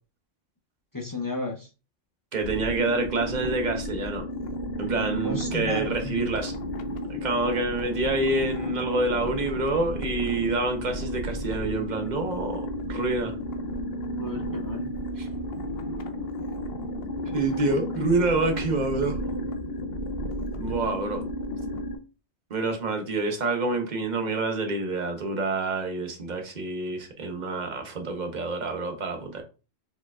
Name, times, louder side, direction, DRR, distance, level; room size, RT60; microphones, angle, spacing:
voice 1, 0.9-1.7 5.2-6.3 14.2-14.9, left 2 dB, 25° left, 0.5 m, -33 dB
voice 2, 2.3-4.2 4.8-6.6 7.1-13.3 15.2-15.3 17.3-19.2 20.6-21.2 22.5-29.4, right 3 dB, 40° right, 0.9 m, -27 dB
sound 1, 2.4-22.0, left 1 dB, 60° left, 0.7 m, -33 dB
4.5 x 4.1 x 2.4 m
omnidirectional pair, 1.3 m